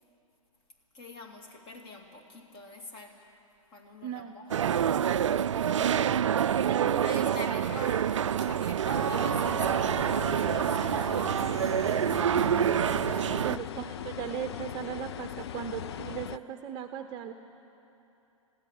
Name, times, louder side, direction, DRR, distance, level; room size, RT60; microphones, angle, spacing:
voice 1, 0.9-3.3 3.7-11.3 13.2-13.6, left 2 dB, 30° left, 3 dB, 2.6 m, -45 dB
voice 2, 4.0-4.4 5.7-6.1 6.7-7.5 8.6-8.9 11.8-12.7 13.4-17.3, right 9 dB, 25° right, 8 dB, 0.9 m, -38 dB
sound 1, 4.5-13.6, right 9 dB, 60° right, 0.4 m, -27 dB
sound 2, 8.9-16.4, left 10 dB, 50° left, 0.4 m, -39 dB
21.5 x 15.5 x 10.0 m, 2.9 s
figure-of-eight pair, 115°, 18 cm